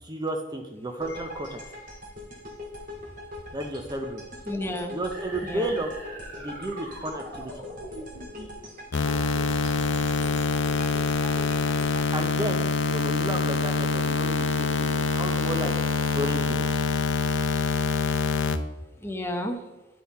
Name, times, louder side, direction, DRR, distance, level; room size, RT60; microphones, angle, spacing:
voice 1, 0.0-1.6 3.5-4.2 4.9-6.0 6.4-7.5 12.1-15.7 16.1-16.8, right 1 dB, 20° right, 4 dB, 0.6 m, -32 dB
sound 1, 1.0-13.2, left 1 dB, 50° right, 1.7 m, -42 dB
voice 2, 1.1-1.8 4.5-4.9 5.4-5.8 19.0-19.6, left 1 dB, 15° left, 4 dB, 0.8 m, -33 dB
sound 2, 5.1-8.6, right 1 dB, 80° right, 2.5 m, -42 dB
sound 3, 8.9-18.6, left 4 dB, 80° left, 0.6 m, -25 dB
10.0 x 3.9 x 4.1 m, 1.1 s
head